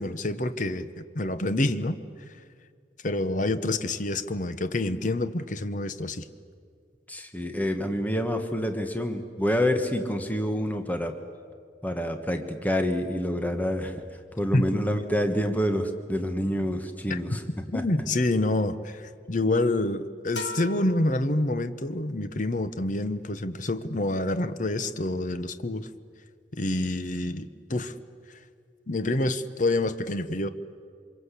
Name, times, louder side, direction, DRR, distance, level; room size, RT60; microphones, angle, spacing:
voice 1, 0.0-2.0 3.0-6.3 14.5-14.8 17.1-17.2 17.7-25.9 26.5-27.9 28.3-28.4 28.9-30.5, left 2 dB, 45° left, 11 dB, 0.9 m, -27 dB
voice 2, 7.1-11.2 11.8-14.0 14.4-17.4 17.7-17.8, equal, 10° left, 6 dB, 1.4 m, -27 dB
sound 1, 20.4-22.1, left 1 dB, 65° left, 2.4 m, -39 dB
26.5 x 22.5 x 8.3 m, 2.2 s
head